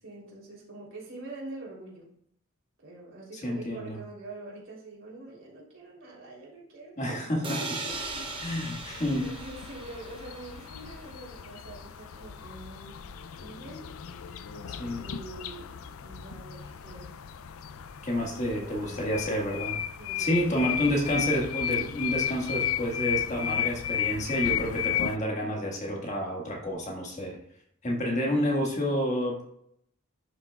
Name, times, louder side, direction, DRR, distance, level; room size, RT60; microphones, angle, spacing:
voice 1, 0.0-2.1 2.8-8.4 9.2-13.0 13.4-13.8 15.0-15.8 16.0-17.1 18.3-19.1 20.0-20.8, right 2 dB, 65° right, -4 dB, 3.3 m, -45 dB
voice 2, 3.3-4.0 7.0-7.6 8.4-9.3 14.8-15.1 18.0-19.8 20.2-27.4 27.8-29.4, equal, 35° left, -1 dB, 1.7 m, -29 dB
sound 1, 7.4-11.2, right 3 dB, 25° right, 1.0 m, -39 dB
sound 2, 7.9-25.2, left 10 dB, 80° left, 0.4 m, -34 dB
11.5 x 6.0 x 2.4 m, 0.70 s
head